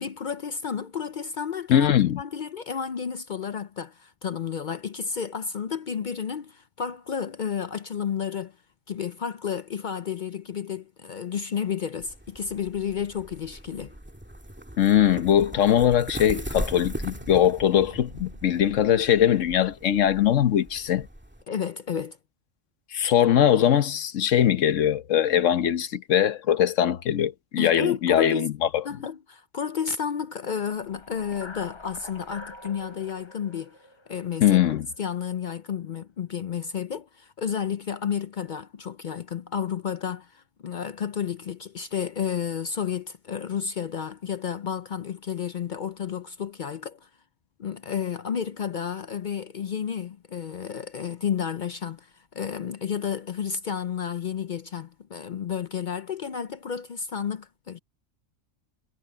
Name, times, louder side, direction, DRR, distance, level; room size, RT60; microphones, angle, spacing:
voice 1, 0.0-1.9 2.2-8.6 8.9-13.9 21.5-22.2 27.6-28.5 28.8-33.8 34.1-34.5 35.0-47.1 47.6-57.8, left 7 dB, 55° left, 0.6 m, -31 dB
voice 2, 1.7-2.2 14.8-21.1 22.9-28.8 34.4-34.9, left 10 dB, 80° left, 1.2 m, -21 dB
sound 1, 12.0-21.4, right 1 dB, 10° right, 2.1 m, -39 dB
sound 2, 15.7-21.0, equal, 40° right, 6.0 m, -51 dB
sound 3, 30.7-34.9, left 2 dB, 25° left, 0.8 m, -45 dB
omnidirectional pair, 1.3 m